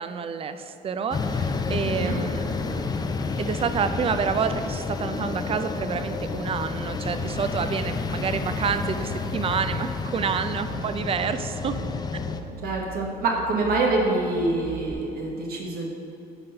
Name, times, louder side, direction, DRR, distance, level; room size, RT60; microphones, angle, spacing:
voice 1, 0.0-3.0 3.4-11.8, right 6 dB, 35° right, 10 dB, 0.4 m, -28 dB
sound 1, 1.1-12.4, left 4 dB, 25° left, 0.5 m, -30 dB
voice 2, 1.9-2.2 12.6-15.9, right 2 dB, 65° right, -1 dB, 1.1 m, -26 dB
sound 2, 6.9-14.9, right 3 dB, 5° left, 1.1 m, -40 dB
9.7 x 3.9 x 5.5 m, 2.9 s
cardioid pair, 110°, 17 cm